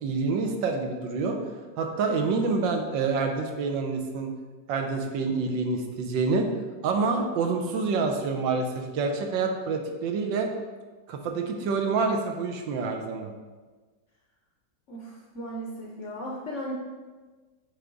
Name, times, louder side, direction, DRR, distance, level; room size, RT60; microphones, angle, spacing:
voice 1, 0.0-1.4 1.8-4.3 4.7-6.5 6.8-10.5 11.1-13.3, right 4 dB, 80° right, 3 dB, 1.4 m, -27 dB
voice 2, 14.9-16.7, equal, 55° left, -2 dB, 0.8 m, -36 dB
8.4 x 3.4 x 3.9 m, 1.3 s
omnidirectional pair, 2.1 m